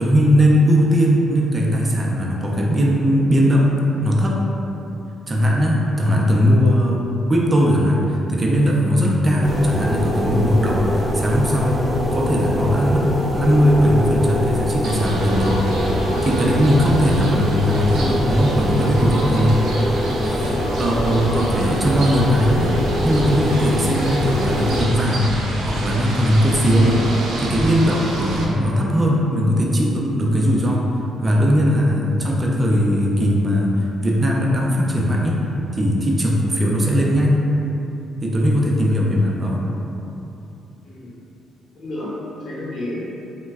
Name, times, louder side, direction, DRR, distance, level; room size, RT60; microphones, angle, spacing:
voice 1, 0.0-3.7 4.0-4.4 5.3-15.6 16.2-19.6 20.3-25.3 25.6-27.1 27.4-30.9 31.2-35.4 35.7-37.4 38.2-39.6, equal, 25° right, -2 dB, 0.5 m, -19 dB
sound 1, 9.4-24.8, equal, ahead, 0.7 m, -24 dB
sound 2, 14.8-28.5, right 1 dB, 85° right, 0.5 m, -28 dB
voice 2, 20.6-21.1 40.8-41.1 41.7-43.1, left 1 dB, 55° left, -7 dB, 1.0 m, -32 dB
3.0 x 2.2 x 3.4 m, 2.9 s
cardioid pair, 90°, 0 cm